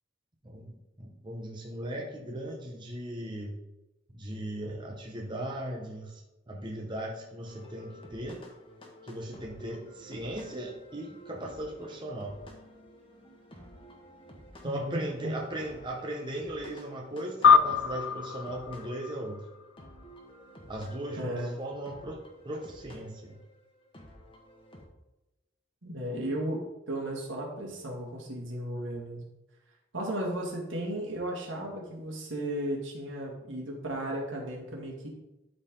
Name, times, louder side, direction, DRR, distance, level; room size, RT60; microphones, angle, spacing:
voice 1, 0.4-3.5 4.1-6.2 6.5-8.4 9.0-12.4 14.6-19.4 20.7-23.4, right 1 dB, 25° right, -1 dB, 1.0 m, -38 dB
sound 1, 7.4-24.9, equal, 25° left, 1.4 m, -52 dB
voice 2, 14.6-15.3 21.2-21.5 25.8-26.6 26.9-29.3 29.9-35.1, right 1 dB, 80° right, -1 dB, 2.3 m, -35 dB
sound 2, 17.4-20.2, left 6 dB, 70° left, 0.4 m, -25 dB
12.5 x 4.5 x 3.9 m, 0.97 s
head